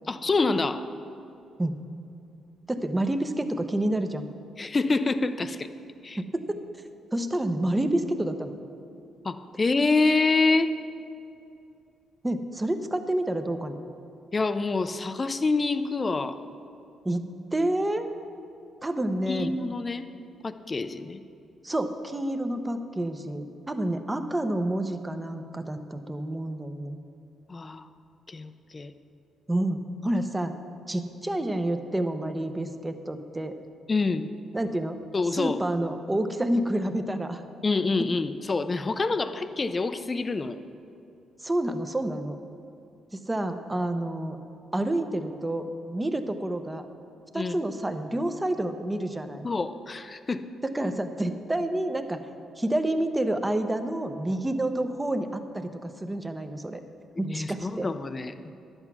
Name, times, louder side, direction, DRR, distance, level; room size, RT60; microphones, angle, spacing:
voice 1, 0.1-0.9 4.6-5.7 6.0-6.2 9.2-10.8 14.3-16.4 19.3-20.1 20.4-21.2 27.5-27.9 28.3-28.9 33.9-34.3 35.1-35.6 37.6-40.6 47.3-47.6 49.4-50.4 57.2-58.5, left 3 dB, 30° left, 10 dB, 0.6 m, -26 dB
voice 2, 2.7-4.3 6.2-6.6 7.1-8.5 12.2-13.8 17.0-17.2 17.5-18.1 18.8-19.5 21.6-27.0 29.5-30.5 30.9-33.6 34.5-35.0 35.3-37.4 41.4-42.4 43.1-44.4 44.7-46.9 47.3-49.5 50.6-52.2 52.6-56.8 57.2-57.9, right 1 dB, 15° right, 8 dB, 0.8 m, -29 dB
11.0 x 8.0 x 6.0 m, 2.7 s
cardioid pair, 90°, 0 cm